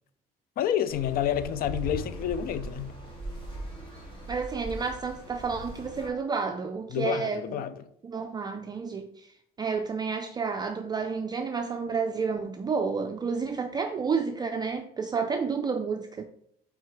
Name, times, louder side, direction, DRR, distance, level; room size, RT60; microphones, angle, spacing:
voice 1, 0.6-3.0 6.9-7.8, left 10 dB, 60° left, 0.5 m, -29 dB
sound 1, 0.9-6.1, right 1 dB, 30° left, 2.3 m, -40 dB
voice 2, 4.3-7.6 8.0-16.2, right 5 dB, 25° right, 0.4 m, -30 dB
4.6 x 4.5 x 4.6 m
cardioid pair, 110°, 17 cm